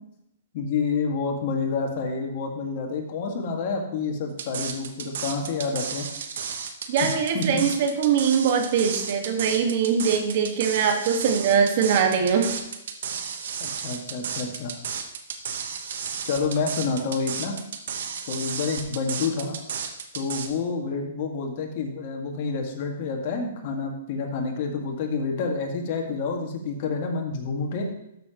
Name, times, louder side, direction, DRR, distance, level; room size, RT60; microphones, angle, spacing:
voice 1, 0.5-6.1 7.3-7.6 13.6-14.7 16.2-17.6 18.3-19.6 20.1-27.9, left 4 dB, 50° left, 2 dB, 1.8 m, -28 dB
sound 1, 4.4-20.5, right 7 dB, 70° right, 1.2 m, -33 dB
voice 2, 6.9-12.5, right 7 dB, 55° right, 4 dB, 1.6 m, -22 dB
13.0 x 6.8 x 3.0 m, 0.83 s
hypercardioid pair, 140°, 0 cm